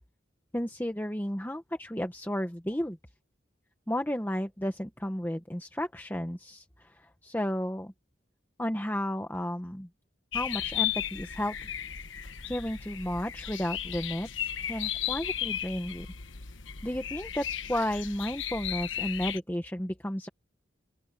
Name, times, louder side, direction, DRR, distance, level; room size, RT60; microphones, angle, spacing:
voice 1, 0.5-3.0 3.9-7.9 8.6-9.9 10.3-11.6 12.4-16.1 16.8-20.3, equal, 10° left, 1.1 m, -33 dB
sound 1, 10.3-19.4, left 10 dB, 85° left, 1.2 m, -35 dB
open air
head